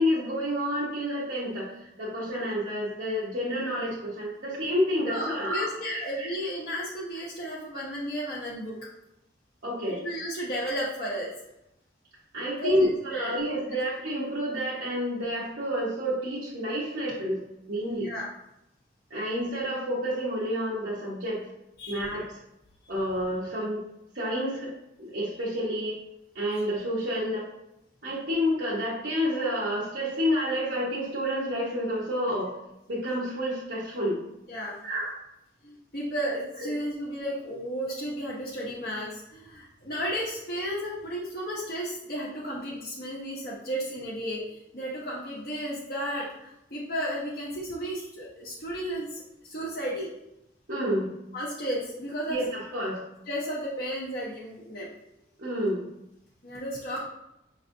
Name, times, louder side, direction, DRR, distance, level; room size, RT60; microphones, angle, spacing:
voice 1, 0.0-6.3 9.6-10.0 12.3-17.4 17.7-18.1 19.1-21.4 21.9-22.3 22.9-23.8 24.1-24.7 25.0-25.9 26.3-27.4 28.0-32.5 32.9-34.2 34.8-35.1 50.7-51.1 52.3-53.0 55.4-55.8, equal, 75° right, -9 dB, 1.1 m, -29 dB
voice 2, 5.0-8.8 9.9-11.3 12.6-13.4 18.0-18.3 21.8-22.1 34.5-34.7 35.6-50.1 51.3-52.4 53.3-54.9 56.4-57.0, equal, 55° left, -5 dB, 0.8 m, -33 dB
5.3 x 3.1 x 2.6 m, 0.86 s
head